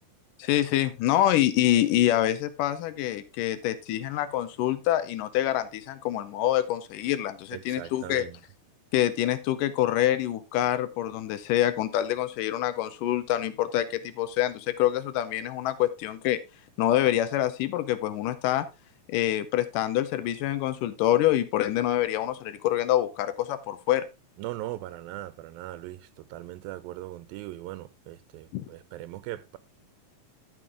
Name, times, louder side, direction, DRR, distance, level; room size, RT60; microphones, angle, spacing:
voice 1, 0.4-8.2 8.9-16.4 16.8-18.7 19.1-24.1 28.5-28.6, left 13 dB, 75° left, 2.2 m, -26 dB
voice 2, 7.5-8.4 24.4-29.6, right 15 dB, 90° right, 2.4 m, -39 dB
12.5 x 5.4 x 3.6 m
omnidirectional pair, 4.0 m